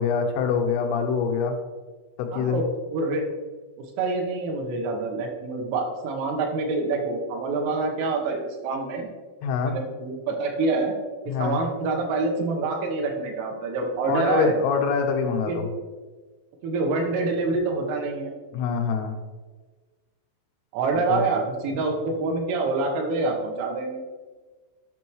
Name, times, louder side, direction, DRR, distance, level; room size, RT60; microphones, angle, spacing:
voice 1, 0.0-1.6 2.2-2.6 9.4-9.8 11.3-11.6 14.1-15.7 18.5-19.2 21.1-21.2, left 6 dB, 85° left, 3 dB, 3.5 m, -24 dB
voice 2, 2.3-3.2 4.0-9.1 9.6-10.9 11.3-14.5 15.5-15.7 16.6-18.3 20.7-24.0, right 3 dB, 85° right, 2 dB, 3.6 m, -26 dB
10.0 x 6.2 x 3.1 m, 1.3 s
omnidirectional pair, 5.6 m